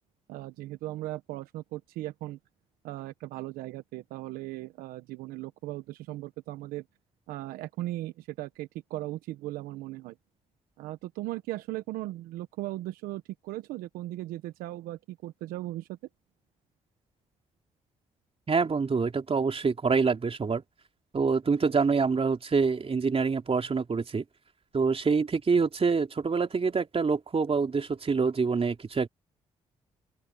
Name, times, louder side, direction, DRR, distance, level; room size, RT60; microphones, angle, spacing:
voice 1, 0.3-2.4 2.8-6.8 7.3-10.2 10.8-16.0, right 16 dB, 85° right, 1.1 m, -37 dB
voice 2, 18.5-20.6 21.1-24.2 24.7-29.1, right 5 dB, 40° right, 3.1 m, -26 dB
open air
hypercardioid pair, 50°, 15 cm